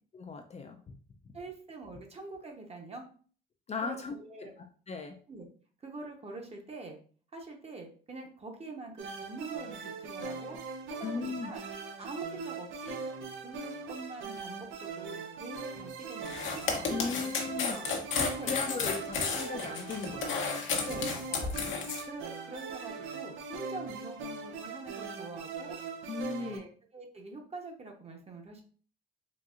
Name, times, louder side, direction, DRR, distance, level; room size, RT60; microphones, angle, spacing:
voice 1, 0.1-0.8 3.7-4.1 4.9-5.2 11.0-11.5 16.9-17.8 18.4-21.0 26.1-26.6, left 5 dB, 35° left, 4 dB, 0.4 m, -37 dB
voice 2, 1.3-3.1 3.8-4.5 5.3-5.5 5.8-7.0 7.3-10.6 10.9-11.6 12.0-13.0 13.4-16.9 17.7-17.9 18.4-18.5 19.0-19.1 20.8-21.7 22.0-25.8 26.4-28.6, right 3 dB, 30° right, 2 dB, 0.9 m, -45 dB
sound 1, 9.0-26.6, right 4 dB, 80° right, 0.6 m, -41 dB
sound 2, 16.2-22.0, left 5 dB, 75° left, 0.8 m, -32 dB
4.0 x 2.6 x 2.4 m, 0.43 s
cardioid pair, 90°, 20 cm